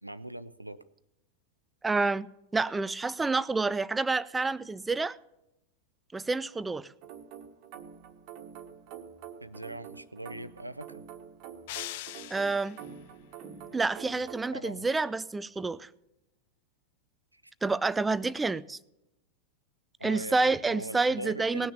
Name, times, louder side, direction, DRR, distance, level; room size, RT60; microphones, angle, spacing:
voice 1, 0.0-0.8 9.4-11.0 14.5-14.9 17.3-17.5 20.0-21.7, right 1 dB, 85° right, 15 dB, 0.7 m, -41 dB
voice 2, 1.8-2.3 2.5-5.2 6.1-6.9 12.3-12.8 13.7-15.9 17.6-18.8 20.0-21.7, right 3 dB, 10° right, 19 dB, 0.5 m, -28 dB
sound 1, 7.0-14.4, right 8 dB, 45° right, 1.4 m, -47 dB
sound 2, 11.7-12.9, left 17 dB, 50° left, 0.4 m, -41 dB
19.5 x 6.5 x 7.0 m, 0.88 s
figure-of-eight pair, 90°, 0 cm